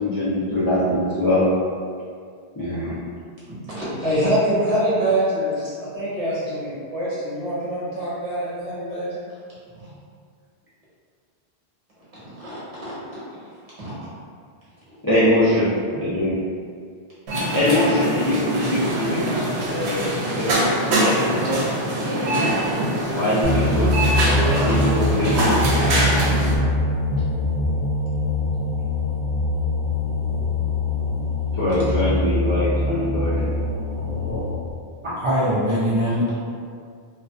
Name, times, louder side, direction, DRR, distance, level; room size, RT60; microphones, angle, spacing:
voice 1, 0.0-1.5 2.6-3.0 15.0-16.4 17.5-21.6 23.1-23.9 24.3-25.9 31.5-33.5, left 1 dB, 35° left, -12 dB, 0.3 m, -23 dB
voice 2, 3.5-9.2 9.8-9.9 12.1-12.9 13.8-13.9, right 1 dB, 35° right, -11 dB, 1.0 m, -25 dB
sound 1, 17.3-26.6, right 1 dB, 85° right, 0.8 m, -23 dB
sound 2, 23.4-34.7, left 2 dB, 70° left, 0.8 m, -23 dB
voice 3, 35.0-36.5, equal, 55° right, -11 dB, 0.3 m, -22 dB
2.4 x 2.2 x 2.3 m, 2.2 s
omnidirectional pair, 1.1 m